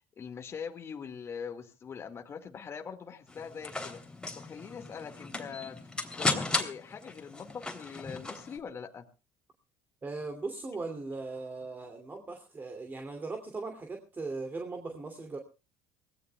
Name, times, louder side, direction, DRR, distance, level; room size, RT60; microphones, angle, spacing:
voice 1, 0.0-4.0 4.4-5.8 6.1-9.0, left 6 dB, 35° left, 4 dB, 1.9 m, -42 dB
sound 1, 3.3-8.6, left 3 dB, 10° left, 3.1 m, -35 dB
voice 2, 10.0-15.4, right 3 dB, 25° right, 4 dB, 2.7 m, -39 dB
23.5 x 18.0 x 2.3 m, 0.31 s
supercardioid pair, 90°, 7 cm